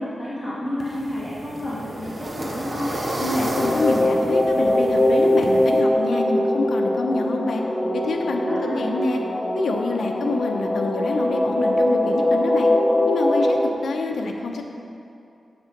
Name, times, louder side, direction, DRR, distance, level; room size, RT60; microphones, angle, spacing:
voice 1, 0.0-3.0 8.5-8.9, left 1 dB, 10° right, -9 dB, 1.8 m, -30 dB
sound 1, 0.8-5.8, right 1 dB, 35° right, 1.1 m, -31 dB
sound 2, 2.9-13.6, left 1 dB, 25° left, 1.1 m, -22 dB
voice 2, 3.2-7.6 7.9-9.2 9.5-12.7 13.1-14.6, left 3 dB, 75° left, 2 dB, 0.8 m, -26 dB
9.1 x 7.0 x 5.3 m, 2.5 s
wide cardioid pair, 105°, 0 cm